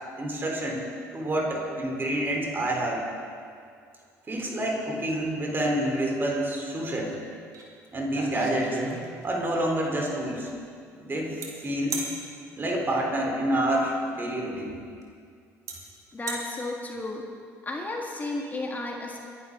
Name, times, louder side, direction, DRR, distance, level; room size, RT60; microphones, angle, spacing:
voice 1, 0.2-0.8 1.1-3.0 4.3-7.2 7.9-8.8 9.2-10.5 11.0-12.0 12.6-14.8, right 1 dB, 30° right, -1 dB, 3.9 m, -28 dB
latch secure, 7.5-7.7 8.0-9.4 11.4-11.5 11.9-12.1 14.0-14.1 15.0-15.1 15.7-15.8 16.1-16.4, right 4 dB, 55° right, 3.2 m, -34 dB
voice 2, 16.1-17.3 17.6-19.2, left 2 dB, 25° left, 0 dB, 1.8 m, -33 dB
22.5 x 11.0 x 3.9 m, 2.3 s
supercardioid pair, 70°, 7 cm